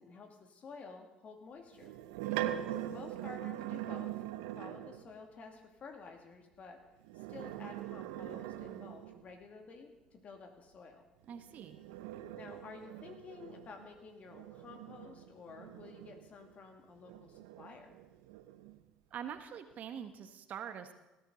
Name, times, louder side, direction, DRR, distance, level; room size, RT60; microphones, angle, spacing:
voice 1, 0.0-1.9 2.8-4.2 4.6-6.8 7.1-11.0 12.3-17.9, left 4 dB, 50° left, 4 dB, 2.5 m, -51 dB
sound 1, 1.7-5.1 7.0-9.4 11.3-16.5 17.0-18.8, right 13 dB, 75° right, 0.7 m, -42 dB
voice 2, 11.3-11.8 19.1-20.9, right 8 dB, 55° right, 9 dB, 1.2 m, -44 dB
18.5 x 13.0 x 4.0 m, 1.0 s
hypercardioid pair, 60°, 3 cm